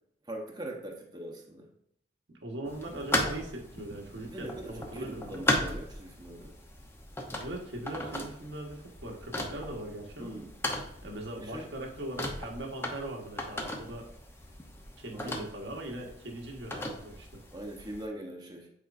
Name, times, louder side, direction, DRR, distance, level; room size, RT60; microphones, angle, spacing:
voice 1, 0.3-1.7 4.2-6.5 10.2-10.5 11.4-11.7 15.1-15.4 17.5-18.7, right 1 dB, 25° right, 0 dB, 0.9 m, -41 dB
voice 2, 2.3-5.5 7.4-10.4 11.0-14.1 15.0-17.4, right 1 dB, 90° right, 0 dB, 1.3 m, -40 dB
sound 1, 2.7-18.0, left 1 dB, 15° left, 0.7 m, -37 dB
8.6 x 4.4 x 2.5 m, 0.73 s
head